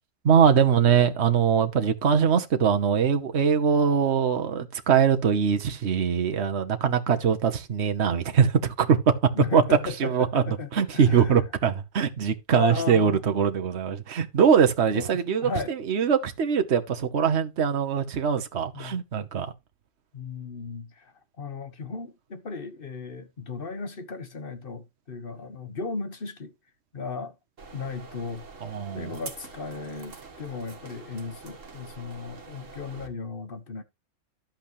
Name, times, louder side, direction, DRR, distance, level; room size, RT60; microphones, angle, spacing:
voice 1, 0.2-9.0 9.5-9.6 10.0-10.4 10.7-19.5 28.6-29.1, right 7 dB, 60° right, 1.3 m, -22 dB
voice 2, 9.3-11.5 12.5-13.2 14.9-15.7 18.7-19.0 20.1-26.5 26.9-27.3 27.7-28.4 28.9-33.8, left 4 dB, 45° left, 1.4 m, -35 dB
sound 1, 27.6-33.1, right 4 dB, 80° right, 1.9 m, -45 dB
12.0 x 8.1 x 3.1 m
omnidirectional pair, 1.3 m